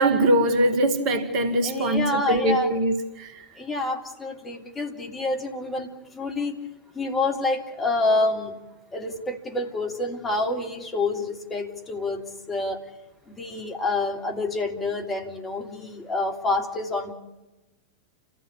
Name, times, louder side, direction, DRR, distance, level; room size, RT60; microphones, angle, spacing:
voice 1, 0.0-3.5, right 1 dB, 40° right, 2.1 m, -22 dB
voice 2, 1.6-2.7 3.6-5.9 6.1-6.6 6.9-8.5 8.9-12.8 13.3-17.1, left 2 dB, 15° left, 3.4 m, -27 dB
30.0 x 15.5 x 8.5 m
figure-of-eight pair, 90°, 0 cm